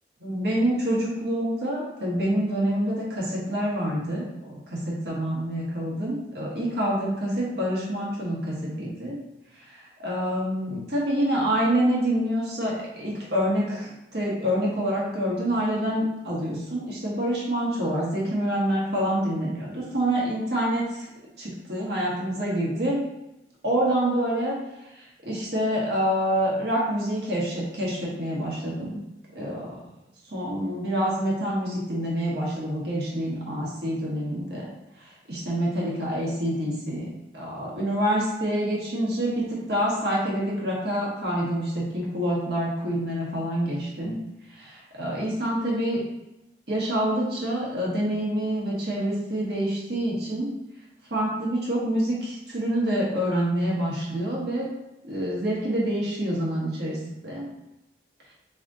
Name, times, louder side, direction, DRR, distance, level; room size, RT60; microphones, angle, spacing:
voice 1, 0.2-9.2 9.6-21.1 21.4-23.0 23.6-24.6 25.0-29.0 29.3-29.8 30.3-34.6 35.0-37.1 37.3-44.2 44.5-46.0 46.7-50.5 51.1-54.7 55.0-57.5, equal, 65° right, -5 dB, 1.5 m, -27 dB
3.8 x 3.5 x 3.7 m, 0.92 s
head